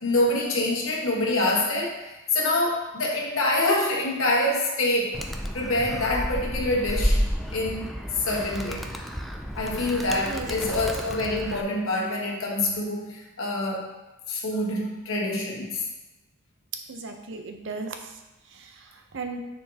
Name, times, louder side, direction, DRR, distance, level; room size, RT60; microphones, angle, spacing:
voice 1, 0.0-5.2 5.5-7.2 7.5-8.9 9.6-13.9 14.3-15.8, left 2 dB, 65° left, -1 dB, 1.4 m, -26 dB
Animal, 5.1-11.6, equal, ahead, 0.4 m, -30 dB
voice 2, 16.9-17.9 18.5-19.4, right 4 dB, 60° right, 5 dB, 0.7 m, -36 dB
9.4 x 4.4 x 2.9 m, 1.0 s
head